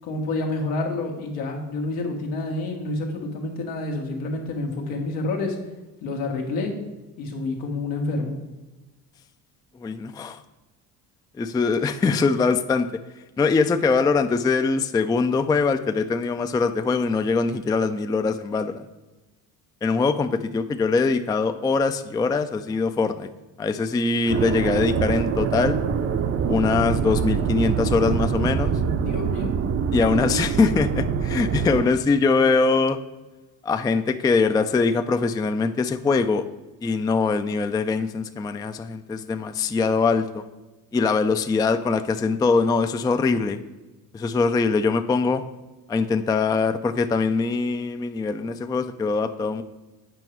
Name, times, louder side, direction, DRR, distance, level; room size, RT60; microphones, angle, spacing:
voice 1, 0.0-5.6 6.0-6.7 7.2-8.3 29.0-29.5, left 2 dB, 90° left, 1 dB, 1.5 m, -28 dB
voice 2, 9.8-10.4 11.4-12.9 13.4-18.8 19.8-23.3 23.6-25.8 26.5-28.7 29.9-33.0 33.6-36.4 36.8-40.4 40.9-43.6 44.1-45.4 45.9-49.6, left 4 dB, 10° left, 9 dB, 0.3 m, -22 dB
sound 1, 24.3-31.9, right 7 dB, 40° right, 0.6 m, -24 dB
8.0 x 5.2 x 4.5 m, 1.1 s
supercardioid pair, 80°, 37 cm